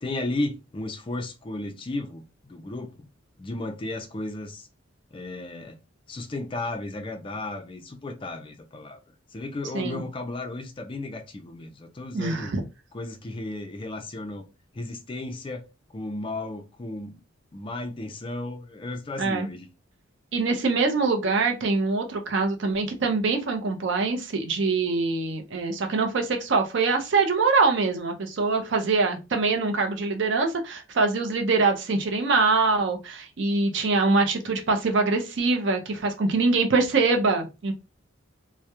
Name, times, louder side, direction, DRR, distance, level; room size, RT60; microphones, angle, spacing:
voice 1, 0.0-3.1 3.4-4.7 5.1-5.8 6.1-9.0 9.3-12.5 12.9-14.4 14.7-15.6 15.9-17.2 17.5-19.7, left 2 dB, 25° left, 0.3 m, -34 dB
voice 2, 12.1-12.6 19.2-19.5 20.3-37.7, right 3 dB, 65° right, 0.5 m, -24 dB
2.3 x 2.0 x 2.8 m
head